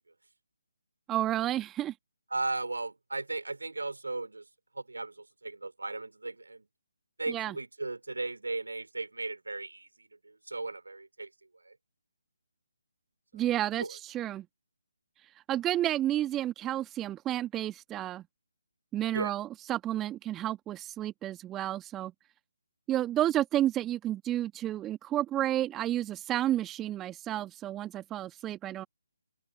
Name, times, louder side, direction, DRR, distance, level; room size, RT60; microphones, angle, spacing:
voice 1, 1.1-1.9 7.3-7.6 13.3-14.5 15.5-18.2 18.9-22.1 22.9-28.9, right 13 dB, 10° right, 2.0 m, -31 dB
voice 2, 2.3-4.4 4.8-6.6 7.2-9.9 10.5-11.3 11.7-11.8 13.8-13.9 19.1-19.3, right 2 dB, 70° right, 4.0 m, -36 dB
open air
figure-of-eight pair, 145°, 0 cm